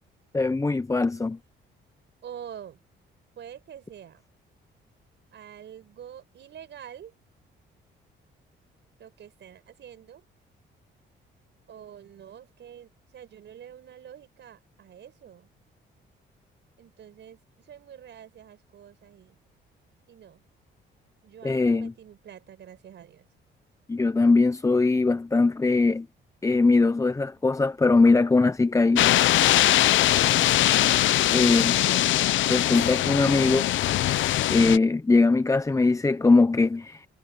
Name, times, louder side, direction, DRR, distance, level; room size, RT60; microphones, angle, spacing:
voice 1, 0.3-1.4 21.4-21.9 23.9-26.1 26.4-29.1 31.3-31.7 32.5-33.7 34.5-37.1, left 3 dB, 15° left, 0.7 m, -21 dB
voice 2, 2.2-2.8 3.4-4.2 5.3-7.1 9.0-10.2 11.7-15.5 16.8-17.4 17.7-19.4 20.1-20.4 21.2-23.3 30.2-30.4 31.3-32.2, right 9 dB, 65° right, 5.2 m, -46 dB
sound 1, 29.0-34.8, left 14 dB, 75° left, 0.7 m, -21 dB
cardioid pair, 90°, 20 cm